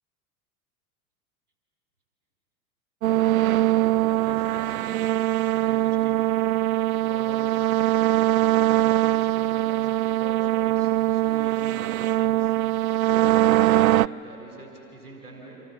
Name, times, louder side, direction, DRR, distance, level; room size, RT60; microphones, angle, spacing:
sound 1, 3.0-14.1, right 15 dB, 70° right, 0.5 m, -22 dB
voice 1, 4.2-6.4 6.9-7.7 8.7-12.6 13.0-15.6, right 2 dB, 85° right, 0 dB, 4.3 m, -43 dB
29.5 x 26.5 x 7.4 m, 2.9 s
figure-of-eight pair, 75°, 44 cm